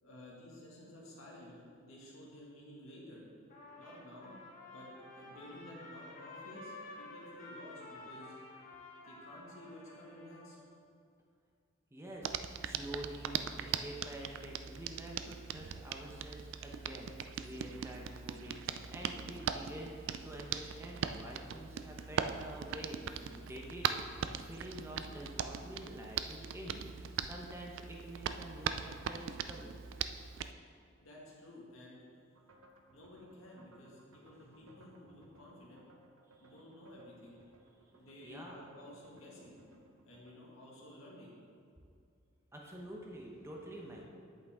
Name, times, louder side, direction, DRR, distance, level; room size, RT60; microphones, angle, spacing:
voice 1, 0.0-3.2 3.8-4.3 4.7-4.9 5.1-8.4 9.0-10.6 31.0-32.0 32.9-35.9 36.4-37.4 37.9-39.6 40.1-41.3, left 1 dB, 75° left, -4 dB, 1.9 m, -53 dB
Trumpet, 3.5-10.6, left 2 dB, 40° left, 1.4 m, -51 dB
voice 2, 11.9-29.8 34.4-34.6 38.2-38.6 42.5-44.0, right 1 dB, 15° right, -1 dB, 0.9 m, -48 dB
Hands, 12.2-30.5, right 7 dB, 60° right, 0.3 m, -40 dB
sound 1, 32.3-40.3, right 1 dB, 90° right, 0.8 m, -63 dB
8.3 x 7.9 x 3.6 m, 2.4 s
head